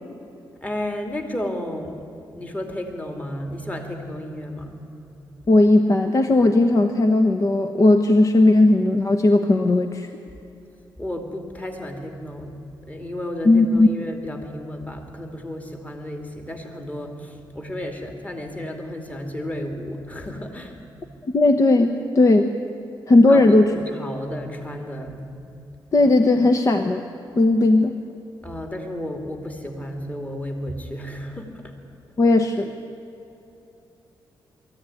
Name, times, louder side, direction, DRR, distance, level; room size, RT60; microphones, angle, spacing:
voice 1, 0.6-1.9 2.3-4.8 11.0-12.5 12.8-20.8 23.3-25.2 28.4-31.7, left 1 dB, 20° left, 4 dB, 2.5 m, -32 dB
voice 2, 5.5-10.1 13.4-13.9 21.3-22.5 23.1-23.7 25.9-27.0 27.4-28.0 32.2-32.7, left 2 dB, 40° left, 6 dB, 1.1 m, -16 dB
22.5 x 14.5 x 9.8 m, 2.8 s
cardioid pair, 85°, 8 cm